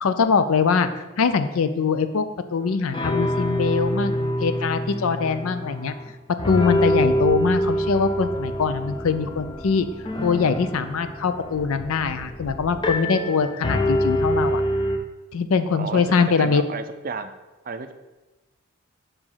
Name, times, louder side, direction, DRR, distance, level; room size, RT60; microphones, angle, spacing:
voice 1, 0.0-5.9 6.5-9.9 10.2-14.6 15.3-16.6, left 5 dB, 70° left, 11 dB, 0.5 m, -23 dB
sound 1, 2.6-2.7 2.9-6.1 6.4-15.0, equal, 20° left, 0.5 m, -26 dB
sound 2, 6.9-12.9, right 1 dB, 5° right, 1.1 m, -44 dB
voice 2, 15.7-16.1 16.4-17.3 17.6-17.9, right 5 dB, 40° right, 9 dB, 0.4 m, -32 dB
4.9 x 4.9 x 5.6 m, 1.1 s
head